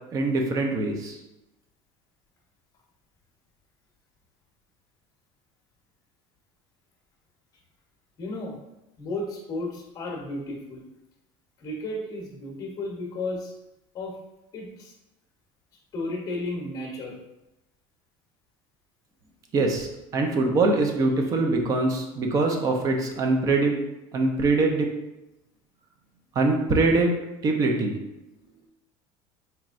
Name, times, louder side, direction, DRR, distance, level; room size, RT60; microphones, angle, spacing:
voice 1, 0.1-1.2 19.5-19.9 20.1-23.8 24.1-24.9 26.4-27.1 27.4-28.0, right 3 dB, 30° right, 3 dB, 0.6 m, -23 dB
voice 2, 8.2-8.6 9.0-10.8 11.6-13.5 13.9-14.2 14.5-14.9 15.9-17.2, left 2 dB, 30° left, -1 dB, 0.9 m, -33 dB
4.4 x 3.0 x 2.5 m, 0.92 s
cardioid pair, 155°, 11 cm